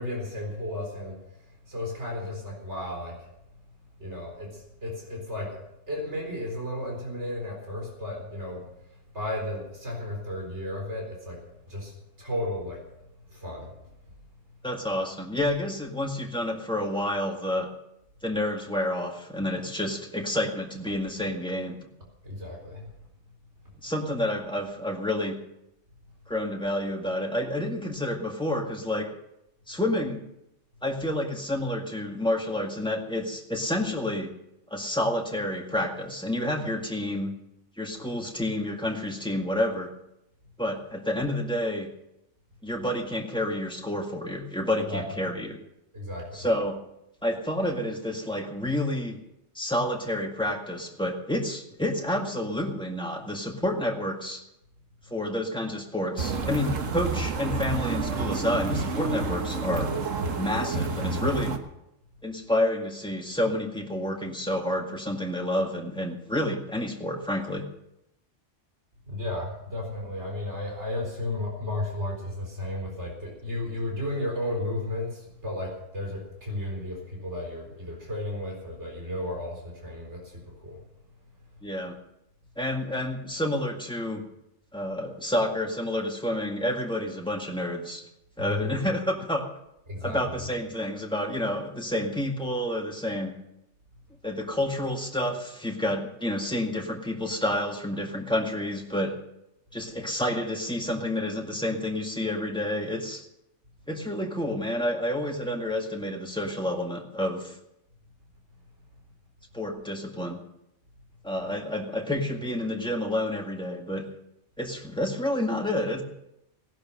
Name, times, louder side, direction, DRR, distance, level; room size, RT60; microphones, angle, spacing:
voice 1, 0.0-3.6 4.0-5.6 5.9-12.8 13.3-13.9 22.2-22.9 44.8-45.0 45.9-46.5 69.1-80.9 81.5-81.6 88.4-88.7 89.9-90.4 111.4-111.6, left 1 dB, 60° right, 0 dB, 4.5 m, -34 dB
voice 2, 14.6-17.7 18.2-21.8 23.8-25.4 26.3-29.1 29.7-30.2 30.8-34.3 34.7-37.3 37.8-39.9 40.6-41.9 42.6-45.6 46.3-46.8 47.2-49.2 49.6-54.4 55.1-59.9 60.4-61.5 62.2-67.6 81.6-82.0 82.6-84.3 84.7-88.1 88.4-89.5 90.0-93.3 94.2-99.2 99.7-103.2 103.9-107.6 109.5-110.4 111.2-114.1 114.6-116.0, left 1 dB, 5° left, 1 dB, 1.9 m, -29 dB
sound 1, 56.2-61.6, right 3 dB, 90° right, 1.6 m, -29 dB
17.5 x 11.5 x 6.4 m, 0.85 s
omnidirectional pair, 1.3 m